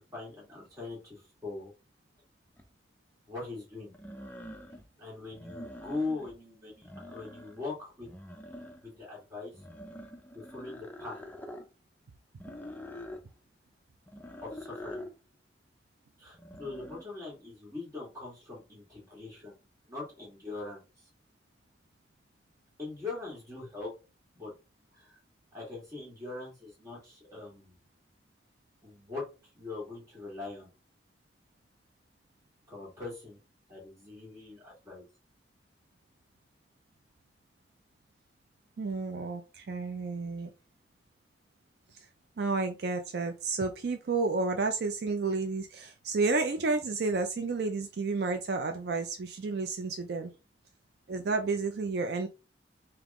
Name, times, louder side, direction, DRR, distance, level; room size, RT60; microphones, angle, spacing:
voice 1, 0.0-1.7 3.3-3.9 5.0-8.1 8.8-9.5 10.3-11.2 14.4-15.0 16.2-19.5 19.9-21.1 22.8-23.9 24.3-24.5 24.9-25.2 25.5-27.8 28.8-29.2 29.5-30.7 32.7-33.4 33.7-35.0, left 3 dB, 15° right, -5 dB, 2.1 m, -41 dB
sound 1, 2.6-2.7 3.9-4.9 5.3-6.4 6.7-7.7 8.0-9.0 9.5-11.7 12.4-13.2 14.1-15.1 16.3-17.0, left 1 dB, 10° left, 0.5 m, -45 dB
voice 2, 38.8-40.5 41.9-42.1 42.4-50.3 51.1-52.3, right 3 dB, 60° right, 6 dB, 0.4 m, -31 dB
3.5 x 2.9 x 3.6 m, 0.30 s
head